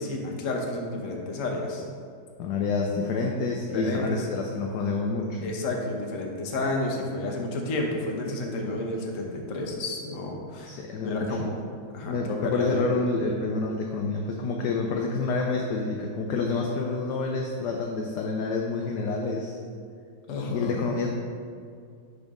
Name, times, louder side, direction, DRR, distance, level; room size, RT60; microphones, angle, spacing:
voice 1, 0.0-1.9 3.5-4.3 5.4-11.6 11.9-12.8 20.3-20.8, left 2 dB, 50° left, 1 dB, 1.0 m, -31 dB
voice 2, 2.4-5.5 10.7-11.5 12.0-19.6 20.5-21.1, left 3 dB, 70° left, 1 dB, 1.0 m, -28 dB
10.5 x 4.1 x 3.6 m, 2.3 s
omnidirectional pair, 2.2 m